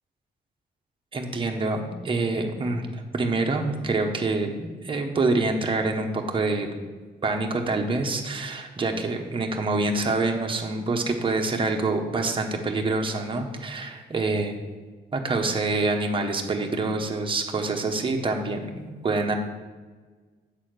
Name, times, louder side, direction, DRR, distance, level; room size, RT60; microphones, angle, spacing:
voice 1, 1.1-6.7 7.2-14.5 15.1-19.4, right 3 dB, 30° right, 3 dB, 1.1 m, -26 dB
8.2 x 4.2 x 6.6 m, 1.4 s
cardioid pair, 105°, 18 cm